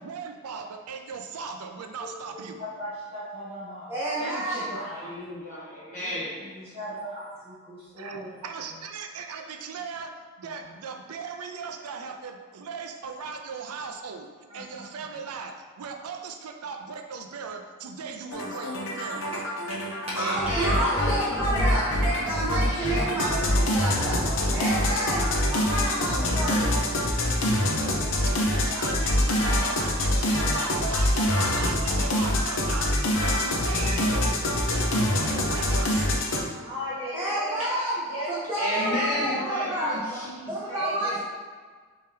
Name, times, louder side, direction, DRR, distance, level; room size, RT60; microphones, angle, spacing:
voice 1, 0.0-2.6 8.0-19.3 28.2-36.1, right 5 dB, 90° right, 5 dB, 0.4 m, -38 dB
voice 2, 2.0-3.9 4.2-5.1 6.0-6.1 6.4-8.8 10.4-10.7 14.5-14.9 19.3-19.4 19.7-20.2 20.7-21.8 22.7-23.1 24.3-24.7 25.1-25.7 26.0-26.6 27.8-28.8 36.6-38.4 38.7-39.7 40.7-41.2, equal, 25° right, -9 dB, 1.3 m, -38 dB
voice 3, 3.9-4.6 20.2-24.1 24.5-26.7 37.1-37.9 38.3-40.2 40.5-41.2, right 1 dB, 10° right, -9 dB, 0.6 m, -29 dB
voice 4, 4.5-6.6 20.1-23.5 26.2-26.8 38.6-41.2, left 1 dB, 35° left, -8 dB, 1.4 m, -34 dB
sound 1, 18.3-36.4, left 1 dB, 65° left, 0.6 m, -25 dB
4.3 x 3.6 x 3.3 m, 1.6 s
head